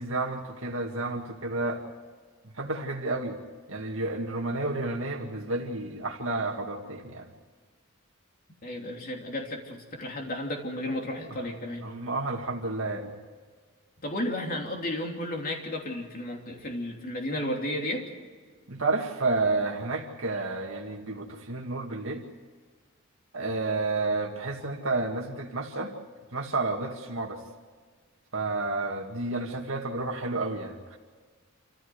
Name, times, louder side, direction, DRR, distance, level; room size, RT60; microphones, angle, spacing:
voice 1, 0.0-1.8 2.5-3.4 3.7-7.3 11.8-13.1 18.7-22.2 23.3-25.9 26.3-27.4 28.3-31.0, right 3 dB, 65° right, 0 dB, 2.1 m, -31 dB
voice 2, 8.6-11.9 14.0-18.1, left 1 dB, 40° left, 1 dB, 3.2 m, -33 dB
27.5 x 15.0 x 8.0 m, 1.5 s
head